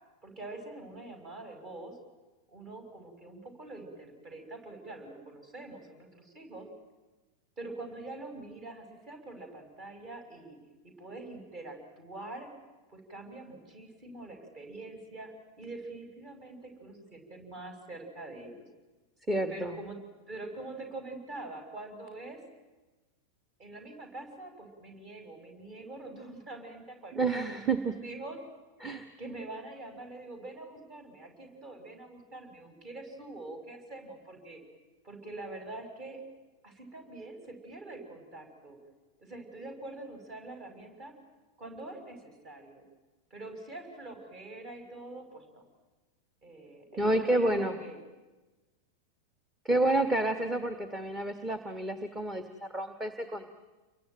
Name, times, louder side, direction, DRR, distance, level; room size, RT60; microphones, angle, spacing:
voice 1, 0.2-2.0 2.5-6.7 7.6-10.6 10.8-12.5 12.9-18.6 19.5-20.0 20.3-22.4 23.6-27.5 28.0-28.4 29.2-34.6 35.0-36.2 36.6-38.8 39.2-41.2 41.6-42.8 43.3-45.7 46.4-48.0, right 2 dB, 35° right, 5 dB, 6.2 m, -44 dB
voice 2, 19.3-19.8 27.1-27.9 28.8-29.1 47.0-47.8 49.6-53.5, right 2 dB, 15° right, 9 dB, 1.6 m, -29 dB
28.5 x 23.0 x 9.1 m, 1.2 s
figure-of-eight pair, 90°, 0 cm